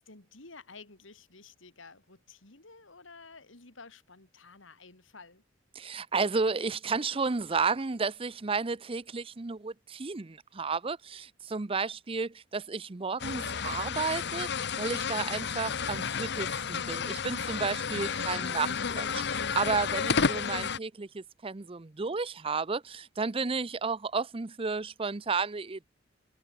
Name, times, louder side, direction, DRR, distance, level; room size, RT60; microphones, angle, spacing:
voice 1, 0.0-5.4, left 4 dB, 85° left, 3.2 m, -52 dB
voice 2, 5.7-14.5 14.8-25.9, right 4 dB, 30° right, 0.6 m, -32 dB
sound 1, 13.2-20.8, left 6 dB, 60° left, 0.9 m, -31 dB
head